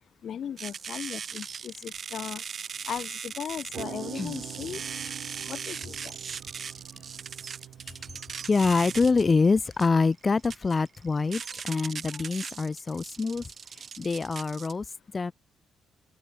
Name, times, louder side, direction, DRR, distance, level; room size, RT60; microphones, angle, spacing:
voice 1, 0.2-2.4 2.9-4.8 5.5-6.1, left 8 dB, 60° left, 3.5 m, -37 dB
sound 1, 0.6-14.7, right 6 dB, 45° right, 7.8 m, -39 dB
sound 2, 3.5-9.5, right 11 dB, 70° right, 6.8 m, -44 dB
voice 2, 8.5-13.4 14.0-14.8 15.1-15.3, left 4 dB, 30° left, 0.8 m, -25 dB
cardioid pair, 90°, 0 cm